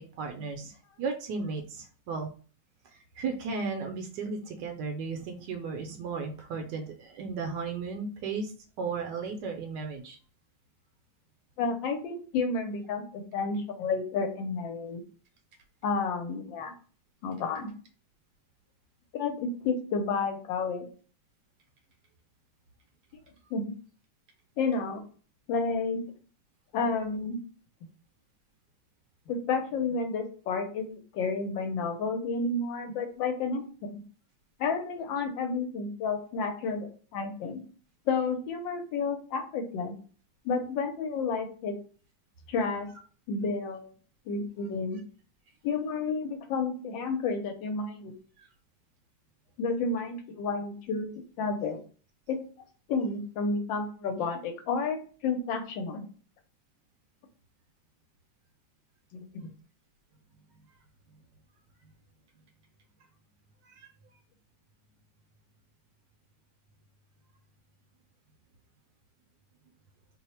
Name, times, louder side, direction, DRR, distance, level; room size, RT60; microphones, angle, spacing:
voice 1, 0.0-2.3 2.9-10.2 48.4-48.5 63.6-63.9, right 4 dB, 75° right, 4 dB, 1.1 m, -35 dB
voice 2, 11.6-15.0 15.8-16.7 17.2-17.7 19.1-20.9 23.5-23.7 24.6-25.0 25.5-26.0 26.7-27.4 29.3-34.0 34.6-37.6 38.1-40.0 40.4-41.7 42.5-42.9 43.3-43.9 44.3-45.0 45.6-48.1 49.6-51.1 51.4-51.8 52.3-52.4 52.9-56.0 59.1-59.5, left 4 dB, 80° left, 5 dB, 1.3 m, -31 dB
3.1 x 2.0 x 4.2 m, 0.40 s
omnidirectional pair, 2.1 m